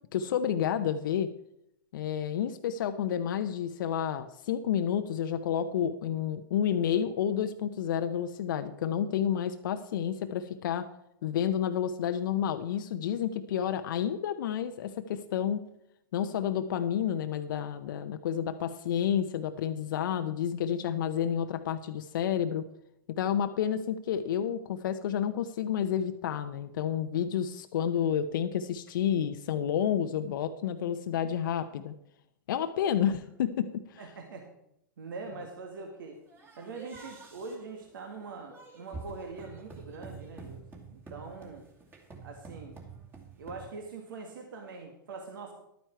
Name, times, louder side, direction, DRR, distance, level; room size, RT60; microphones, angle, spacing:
voice 1, 0.1-1.3 1.9-10.9 11.2-15.6 16.1-22.6 23.1-31.9 32.5-34.0, left 9 dB, 65° left, 9 dB, 0.7 m, -30 dB
voice 2, 34.0-34.5 35.0-36.2 36.6-41.7 42.2-42.8 43.4-45.5, right 4 dB, 70° right, 3 dB, 1.8 m, -43 dB
sound 1, 36.3-43.7, right 4 dB, 20° right, 2.4 m, -48 dB
11.5 x 9.2 x 4.5 m, 0.78 s
hypercardioid pair, 115°, 11 cm